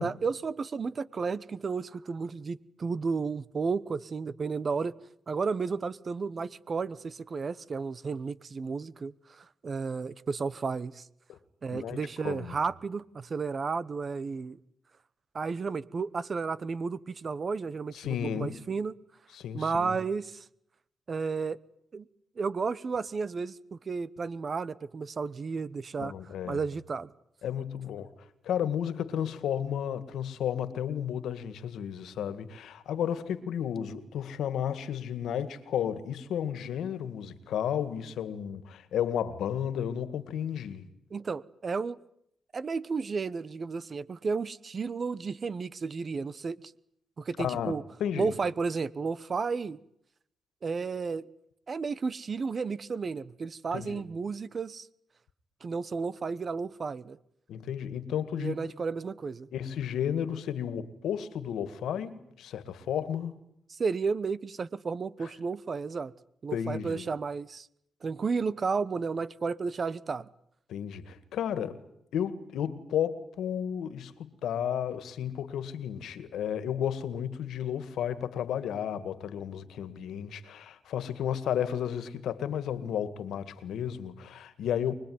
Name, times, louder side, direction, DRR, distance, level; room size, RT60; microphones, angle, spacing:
voice 1, 0.0-4.9 5.3-11.1 11.6-14.6 15.3-18.9 19.5-20.4 21.1-21.6 21.9-22.0 22.4-26.1 26.5-27.1 41.1-42.0 42.5-46.6 47.2-47.8 48.2-49.8 50.6-51.3 51.7-54.9 55.6-57.2 58.4-59.5 63.7-66.1 66.4-67.7 68.0-70.3, right 4 dB, 45° right, 1.1 m, -32 dB
voice 2, 12.2-12.6 17.9-18.7 19.3-20.0 26.0-26.6 27.4-28.1 28.4-40.9 47.4-48.3 53.7-54.0 57.5-58.7 59.5-63.4 65.2-65.3 66.5-67.1 70.7-71.8 72.1-84.9, left 9 dB, 85° left, 2.0 m, -33 dB
24.5 x 21.0 x 9.6 m
cardioid pair, 80°, 0 cm